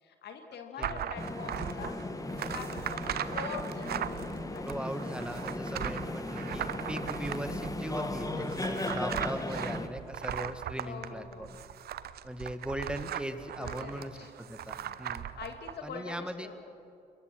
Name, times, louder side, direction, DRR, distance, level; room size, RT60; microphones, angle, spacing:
voice 1, 0.0-2.0 2.4-4.9 10.8-11.5 13.6-14.3 14.8-15.1 15.4-16.6, left 5 dB, 55° left, 5 dB, 2.1 m, -44 dB
sound 1, 0.8-15.7, right 10 dB, 50° right, 0.9 m, -39 dB
sound 2, 1.2-9.9, left 2 dB, 15° left, 2.0 m, -37 dB
voice 2, 4.7-11.6 12.2-15.3 15.8-16.5, right 1 dB, 5° right, 10 dB, 1.9 m, -39 dB
29.5 x 21.5 x 6.3 m, 2.6 s
figure-of-eight pair, 40°, 21 cm